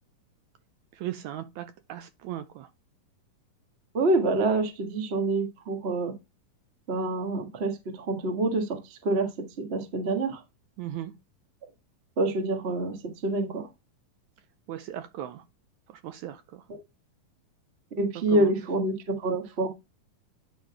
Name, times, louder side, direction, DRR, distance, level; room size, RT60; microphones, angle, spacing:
voice 1, 0.9-2.7 10.8-11.1 14.7-15.4 15.9-16.6 18.3-18.5, right 12 dB, 80° right, 1.8 m, -37 dB
voice 2, 3.9-6.1 6.9-9.3 9.6-10.4 12.2-13.7 16.7-16.8 18.0-19.7, right 2 dB, 50° right, 0.7 m, -27 dB
10.5 x 4.0 x 4.7 m
omnidirectional pair, 3.8 m